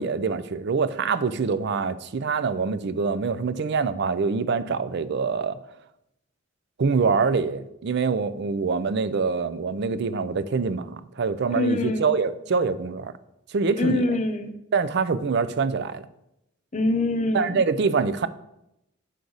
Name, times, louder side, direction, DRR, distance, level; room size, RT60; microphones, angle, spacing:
voice 1, 0.0-5.6 6.8-13.1 13.5-14.1 14.7-16.0 17.3-18.3, right 5 dB, 55° right, 13 dB, 0.4 m, -25 dB
voice 2, 11.5-12.1 13.8-14.5 16.7-17.6, left 2 dB, 35° left, 7 dB, 0.7 m, -24 dB
8.2 x 6.3 x 3.9 m, 0.83 s
head